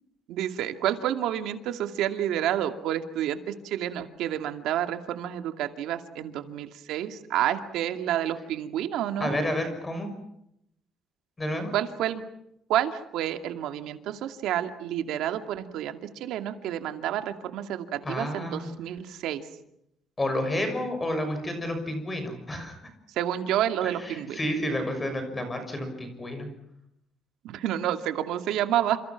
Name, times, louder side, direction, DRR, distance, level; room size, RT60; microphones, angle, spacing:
voice 1, 0.3-3.4 3.6-9.4 11.7-12.2 12.7-19.4 23.2-24.4 27.4-29.0, right 11 dB, 85° right, 7 dB, 2.4 m, -29 dB
voice 2, 9.2-10.1 11.4-11.7 18.0-18.7 20.2-22.8 23.8-26.5, left 1 dB, 15° left, 7 dB, 6.2 m, -30 dB
29.0 x 28.0 x 6.0 m, 0.77 s
cardioid pair, 160°, 0 cm